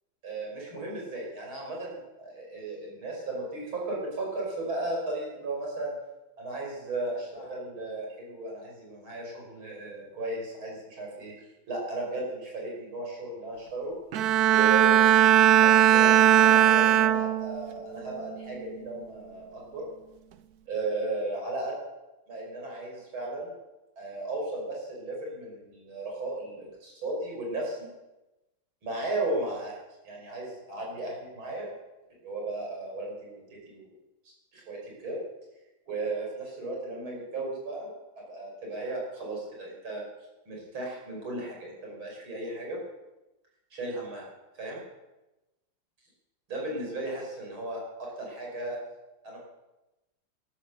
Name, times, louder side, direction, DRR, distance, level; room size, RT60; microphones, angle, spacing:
voice 1, 0.2-5.9 6.4-11.3 11.7-13.9 14.5-19.8 20.7-21.7 22.3-23.5 24.0-27.9 28.8-29.8 30.0-31.7 32.2-33.9 34.3-35.2 35.9-37.9 38.3-40.0 40.5-42.8 43.7-44.3 44.6-44.8 46.5-47.8 48.2-48.8 49.2-49.4, right 2 dB, 90° right, -2 dB, 6.0 m, -35 dB
Bowed string instrument, 14.1-17.7 18.2-18.5, right 10 dB, 65° right, 1.0 m, -19 dB
13.0 x 13.0 x 6.8 m, 1.0 s
omnidirectional pair, 2.2 m